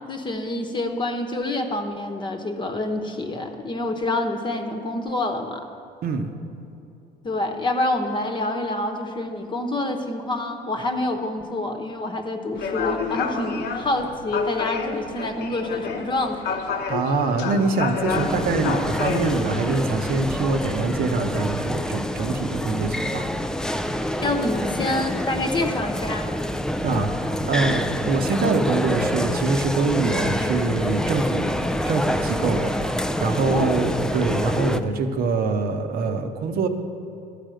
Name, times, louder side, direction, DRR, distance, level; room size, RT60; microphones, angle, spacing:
voice 1, 0.1-5.6 7.2-16.7 24.2-26.3 33.5-33.9, left 2 dB, 25° left, 5 dB, 1.0 m, -27 dB
voice 2, 6.0-6.3 16.9-23.3 26.8-27.1 27.5-31.5 31.8-36.7, right 4 dB, 60° right, 6 dB, 0.8 m, -24 dB
sound 1, 12.5-20.1, left 5 dB, 75° left, 0.9 m, -30 dB
sound 2, 18.1-34.8, left 1 dB, 5° left, 0.3 m, -26 dB
12.5 x 5.0 x 7.7 m, 2.7 s
cardioid pair, 110°, 17 cm